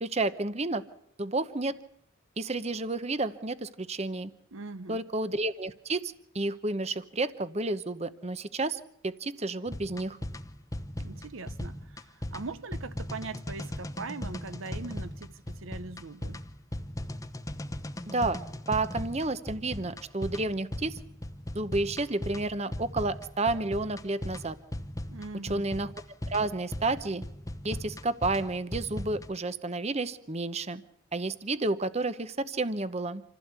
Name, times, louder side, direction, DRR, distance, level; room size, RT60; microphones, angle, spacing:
voice 1, 0.0-0.8 1.2-1.8 2.4-4.3 4.9-10.2 18.1-18.4 18.7-21.0 21.5-24.6 25.4-25.9 26.3-27.2 27.6-30.8 31.1-33.2, right 2 dB, 30° right, 0.8 m, -31 dB
voice 2, 4.5-5.0 11.0-16.4 25.1-25.7, right 3 dB, 70° right, 0.8 m, -41 dB
sound 1, 9.7-29.3, left 1 dB, 15° left, 0.9 m, -38 dB
27.0 x 15.5 x 8.2 m
head